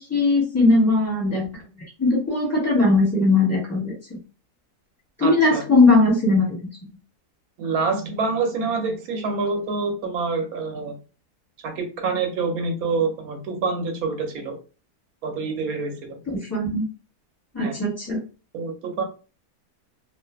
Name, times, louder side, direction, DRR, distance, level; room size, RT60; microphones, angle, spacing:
voice 1, 0.0-1.5 2.0-4.2 5.2-6.7 16.5-16.9 17.5-18.2, left 2 dB, 10° left, -5 dB, 1.1 m, -19 dB
voice 2, 5.2-5.6 7.6-11.0 11.6-14.6 15.2-16.2 17.6-17.8 18.5-19.0, right 4 dB, 70° right, 5 dB, 1.1 m, -26 dB
2.5 x 2.4 x 2.2 m, 0.34 s
omnidirectional pair, 1.7 m